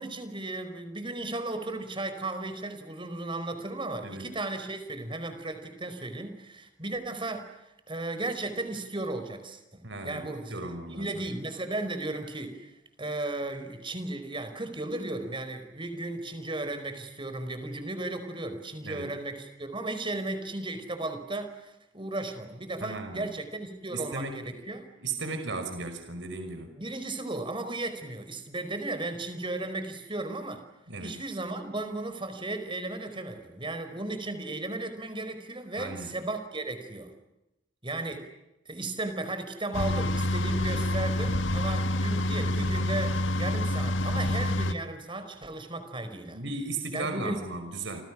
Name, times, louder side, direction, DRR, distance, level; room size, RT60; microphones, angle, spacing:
voice 1, 0.0-7.5 7.9-12.7 13.0-24.9 26.8-30.6 31.0-37.1 37.8-38.3 38.6-46.4 46.9-47.4, right 2 dB, 25° right, 8 dB, 4.9 m, -35 dB
voice 2, 9.8-11.2 18.8-19.1 22.8-23.3 23.9-24.6 25.0-26.7 30.9-31.3 35.8-36.2 46.3-48.0, right 3 dB, 65° right, 6 dB, 5.5 m, -36 dB
sound 1, 39.7-44.7, left 1 dB, 75° left, 1.8 m, -27 dB
29.5 x 27.0 x 6.4 m, 0.90 s
head